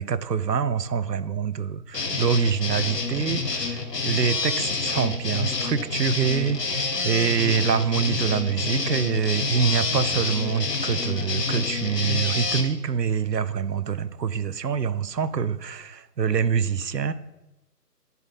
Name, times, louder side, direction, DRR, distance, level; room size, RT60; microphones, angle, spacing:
voice 1, 0.0-17.1, right 6 dB, 85° right, 16 dB, 0.6 m, -25 dB
sound 1, 1.9-12.6, left 4 dB, 75° left, 1.2 m, -28 dB
10.5 x 4.1 x 4.1 m, 0.96 s
figure-of-eight pair, 155°, 49 cm